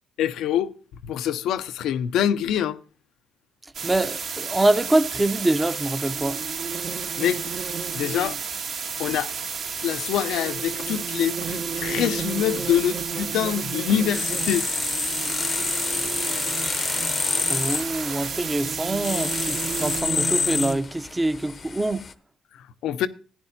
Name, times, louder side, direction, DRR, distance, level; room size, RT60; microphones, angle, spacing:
voice 1, 0.2-2.8 7.2-7.5 7.9-8.4 9.0-9.3 9.8-14.7 22.8-23.1, left 10 dB, 85° left, 0.6 m, -25 dB
sound 1, 3.7-20.0, right 6 dB, 65° right, 1.6 m, -32 dB
voice 2, 3.8-6.4 17.5-22.1, right 2 dB, 15° right, 0.7 m, -24 dB
sound 2, 6.1-8.4 9.7-20.8, right 6 dB, 45° right, 0.8 m, -35 dB
sound 3, 14.1-22.1, left 5 dB, 40° left, 0.7 m, -28 dB
15.5 x 9.7 x 2.6 m
cardioid pair, 90°, 0 cm